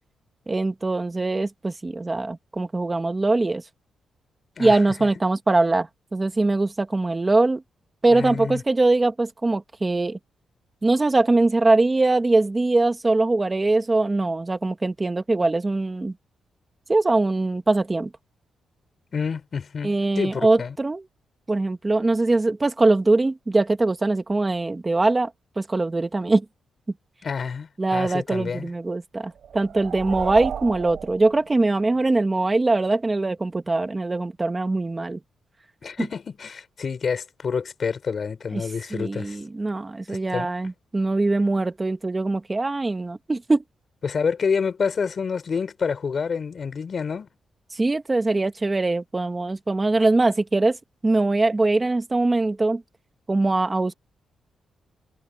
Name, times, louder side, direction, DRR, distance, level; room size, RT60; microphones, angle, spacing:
voice 1, 0.5-3.6 4.6-7.6 8.0-10.2 10.8-16.1 16.9-18.1 19.8-21.0 21.5-25.3 25.6-26.4 27.8-35.2 38.5-38.6 38.9-43.6 47.7-50.8 51.0-52.8 53.3-53.9, right 2 dB, 15° right, 1.4 m, -22 dB
voice 2, 8.1-8.6 19.1-20.8 27.2-28.7 35.8-39.4 40.1-40.5 44.0-47.3, left 5 dB, 40° left, 5.2 m, -28 dB
sound 1, 29.3-32.0, right 8 dB, 60° right, 6.7 m, -34 dB
wide cardioid pair, 160°, 0 cm